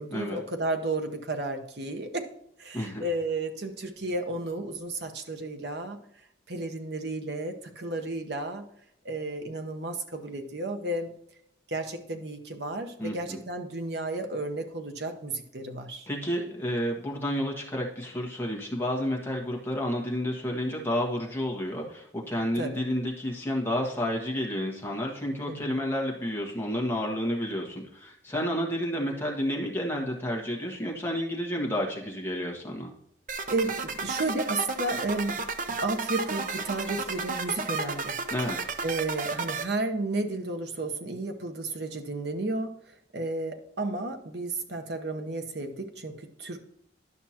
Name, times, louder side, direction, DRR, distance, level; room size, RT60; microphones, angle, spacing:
voice 1, 0.0-2.3 2.6-6.0 6.5-8.7 9.0-11.1 11.7-16.1 22.6-22.9 25.5-25.8 33.5-35.4 35.8-38.2 38.8-46.6, right 2 dB, 65° right, 6 dB, 1.0 m, -32 dB
voice 2, 13.0-13.4 16.1-32.9 38.3-38.6, equal, 10° left, -2 dB, 1.5 m, -30 dB
sound 1, 33.3-39.6, right 4 dB, 45° right, 0.6 m, -32 dB
11.0 x 5.9 x 2.9 m, 0.73 s
head